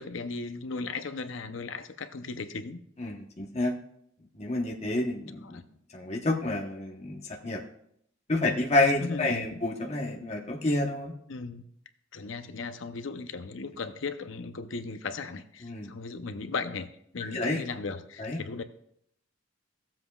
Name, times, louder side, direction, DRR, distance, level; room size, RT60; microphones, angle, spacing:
voice 1, 0.0-2.8 5.4-5.6 9.0-9.6 11.3-11.6 12.1-16.9 17.1-18.6, left 4 dB, 75° left, 10 dB, 0.7 m, -36 dB
voice 2, 3.0-3.7 4.3-5.6 5.9-7.6 8.3-11.1 15.6-15.9 17.2-17.6 18.2-18.4, left 2 dB, 35° left, 0 dB, 1.0 m, -29 dB
16.0 x 7.5 x 2.3 m, 0.71 s
head